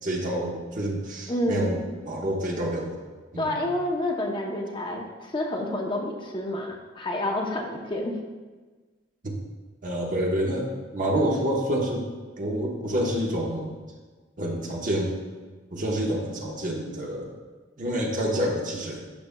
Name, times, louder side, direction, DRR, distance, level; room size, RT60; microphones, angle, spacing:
voice 1, 0.0-3.0 3.3-3.6 9.2-9.3 9.8-12.0 12.4-13.7 14.4-15.2 15.7-17.3 17.8-19.0, right 1 dB, 45° right, -1 dB, 1.0 m, -28 dB
voice 2, 1.3-1.9 3.4-8.2, left 1 dB, 25° left, 1 dB, 0.7 m, -29 dB
10.5 x 5.8 x 2.2 m, 1.4 s
head